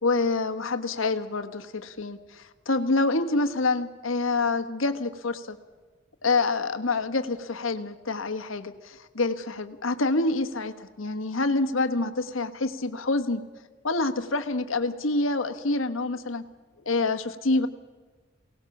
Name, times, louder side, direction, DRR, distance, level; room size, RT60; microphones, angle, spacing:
voice 1, 0.0-5.6 6.2-13.4 13.8-16.4 16.8-17.7, left 3 dB, 85° left, 8 dB, 1.3 m, -27 dB
23.0 x 18.5 x 7.2 m, 1.4 s
head